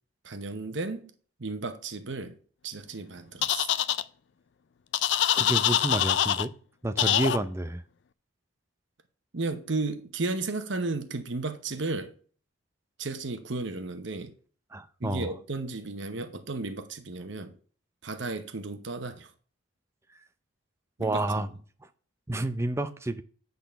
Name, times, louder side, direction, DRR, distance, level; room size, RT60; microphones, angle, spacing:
voice 1, 0.2-1.1 1.4-2.4 2.6-3.7 9.3-12.1 13.0-14.3 15.0-17.6 18.0-19.3 21.0-21.5, right 3 dB, 65° right, 0.9 m, -34 dB
sound 1, 3.4-4.0 4.9-6.5 7.0-7.4, left 11 dB, 60° left, 0.4 m, -24 dB
voice 2, 5.3-6.5 6.8-7.8 14.7-15.3 21.0-21.5 22.3-23.2, right 1 dB, 15° right, 0.5 m, -29 dB
8.8 x 4.0 x 6.8 m
head